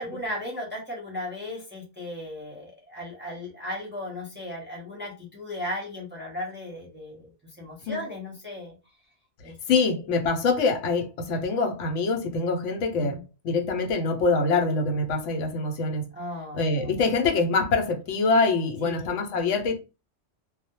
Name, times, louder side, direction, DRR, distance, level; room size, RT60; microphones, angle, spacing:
voice 1, 0.0-8.8 9.4-9.9 13.0-13.2 16.1-17.0 18.8-19.1, left 1 dB, 10° right, 0.6 m, -36 dB
voice 2, 9.7-16.1 16.5-19.8, left 3 dB, 80° left, 0.9 m, -25 dB
2.2 x 2.1 x 2.8 m
omnidirectional pair, 1.2 m